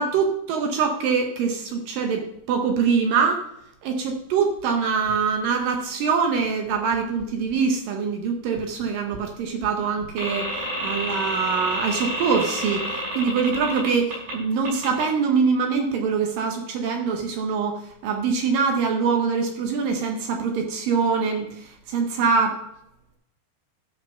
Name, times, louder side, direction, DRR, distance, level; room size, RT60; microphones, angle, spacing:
voice 1, 0.0-3.5 3.8-10.6 10.8-22.6, right 5 dB, 70° right, 4 dB, 2.2 m, -24 dB
sound 1, 10.2-14.3 14.6-15.0, right 1 dB, 45° right, 6.0 m, -29 dB
12.5 x 6.5 x 5.7 m, 0.78 s
omnidirectional pair, 4.8 m